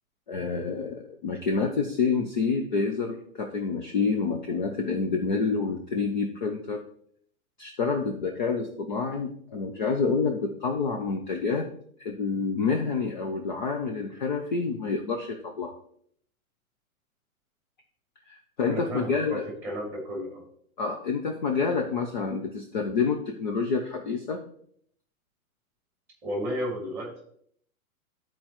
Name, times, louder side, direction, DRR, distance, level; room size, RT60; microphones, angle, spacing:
voice 1, 0.3-6.8 7.6-11.7 12.0-15.8 18.3-19.4 20.8-24.4, left 4 dB, 35° left, 4 dB, 0.5 m, -28 dB
voice 2, 18.6-20.4 26.2-27.2, equal, 5° right, -1 dB, 2.2 m, -33 dB
12.0 x 4.4 x 3.0 m, 0.65 s
hypercardioid pair, 175°, 43 cm